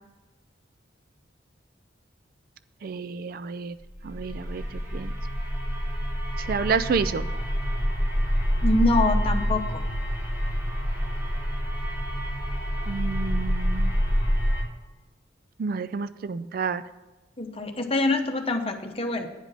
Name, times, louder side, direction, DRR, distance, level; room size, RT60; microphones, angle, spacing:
voice 1, 2.8-3.7 4.0-4.6 4.9-5.1 6.4-7.3 12.9-13.9 15.6-16.8, right 5 dB, 50° right, 12 dB, 0.4 m, -29 dB
sound 1, 3.9-14.6, equal, 15° right, 2.8 m, -27 dB
voice 2, 8.6-9.8 17.4-19.3, left 2 dB, 30° left, 5 dB, 0.9 m, -25 dB
9.6 x 5.1 x 7.3 m, 1.1 s
head